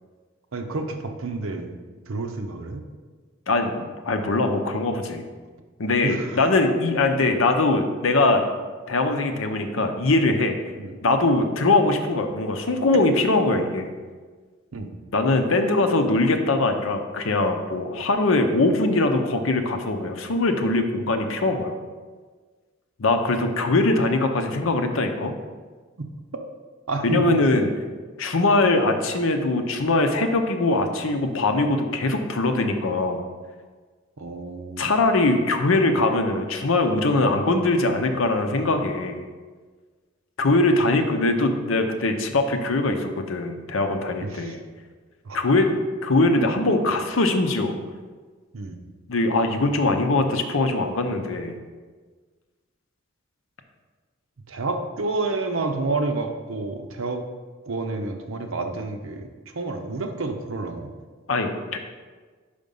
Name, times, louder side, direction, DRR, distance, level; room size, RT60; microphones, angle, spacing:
voice 1, 0.5-1.8 2.1-2.8 6.0-6.4 10.8-11.0 12.9-13.1 14.7-14.9 26.0-26.4 26.9-27.2 34.2-34.9 44.2-44.6 45.2-45.4 46.3-46.5 48.5-48.8 54.5-57.2 57.7-59.3 59.5-60.9, right 3 dB, 85° right, 5 dB, 0.7 m, -29 dB
voice 2, 3.5-5.2 5.8-8.4 8.9-10.6 11.0-13.9 15.1-21.7 23.0-25.3 27.0-27.7 28.2-33.2 34.8-39.2 40.4-44.6 45.3-47.8 49.1-51.5 61.3-61.8, left 2 dB, 80° left, 6 dB, 0.7 m, -22 dB
5.3 x 5.1 x 5.3 m, 1.4 s
head